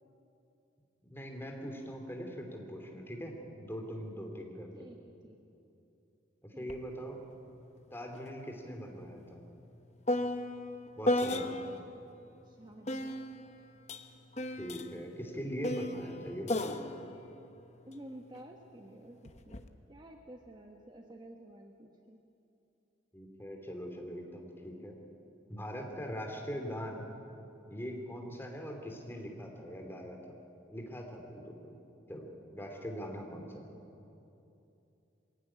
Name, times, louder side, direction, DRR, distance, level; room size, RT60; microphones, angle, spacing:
voice 1, 1.0-4.9 6.4-7.2 7.9-9.4 11.0-11.5 14.5-16.7 23.1-24.9 25.5-27.0 27.7-30.2 30.7-31.8 32.1-32.3 32.5-33.6, equal, 10° left, 2 dB, 2.8 m, -41 dB
voice 2, 4.7-5.4 6.5-6.7 12.4-13.5 17.9-22.2, right 1 dB, 20° right, 2 dB, 1.1 m, -51 dB
sound 1, 6.7-6.8 7.2-11.9 12.9-18.4 19.2-19.7, left 1 dB, 35° left, 0.9 m, -36 dB
22.0 x 16.5 x 9.9 m, 2.8 s
head